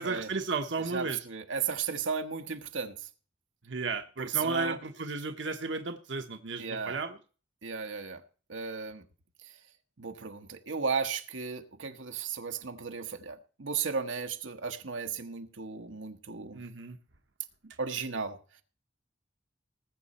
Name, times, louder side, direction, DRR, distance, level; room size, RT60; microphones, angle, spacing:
voice 1, 0.0-1.2 3.7-7.2 16.5-17.0, right 4 dB, 70° right, 1.1 m, -34 dB
voice 2, 0.9-3.1 4.2-4.8 6.6-7.0 7.6-8.2 8.5-9.0 10.0-16.6 17.8-18.4, right 5 dB, 90° right, 1.3 m, -35 dB
19.5 x 7.5 x 4.3 m
head